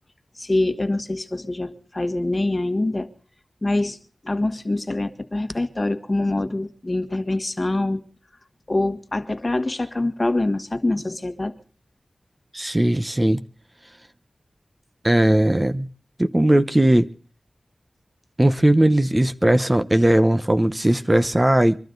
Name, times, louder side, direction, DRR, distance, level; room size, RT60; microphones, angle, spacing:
voice 1, 0.3-3.1 3.6-4.0 4.2-8.0 8.7-11.5 13.2-13.3, left 2 dB, 35° left, 1.6 m, -24 dB
voice 2, 12.5-13.4 15.0-15.9 16.2-17.1 18.4-21.8, right 1 dB, 25° right, 0.9 m, -18 dB
24.0 x 12.5 x 4.0 m
cardioid pair, 45°, 0 cm